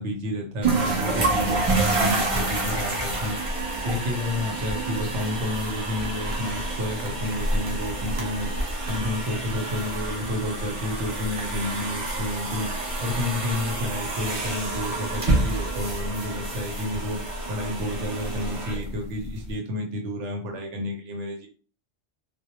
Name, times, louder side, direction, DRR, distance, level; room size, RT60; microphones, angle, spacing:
voice 1, 0.0-3.4 3.8-8.5 8.9-12.7 13.0-17.2 17.5-21.5, left 1 dB, 90° right, 1 dB, 0.9 m, -30 dB
sound 1, 0.6-19.5, right 2 dB, 45° right, 0.5 m, -28 dB
2.2 x 2.0 x 2.8 m, 0.41 s
omnidirectional pair, 1.2 m